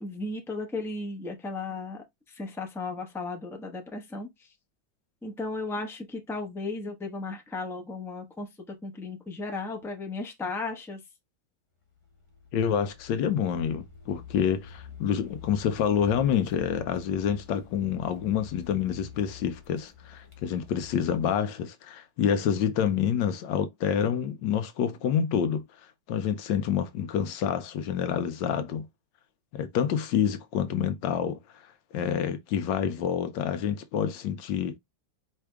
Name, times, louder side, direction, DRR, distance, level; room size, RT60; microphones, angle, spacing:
voice 1, 0.0-4.5 5.2-11.0, left 3 dB, ahead, 0.8 m, -35 dB
Car, 11.9-21.3, left 7 dB, 20° left, 1.3 m, -47 dB
voice 2, 12.5-25.6 26.1-28.9 29.5-31.6 31.9-34.8, left 8 dB, 75° left, 1.2 m, -27 dB
4.6 x 3.4 x 3.4 m
omnidirectional pair, 2.1 m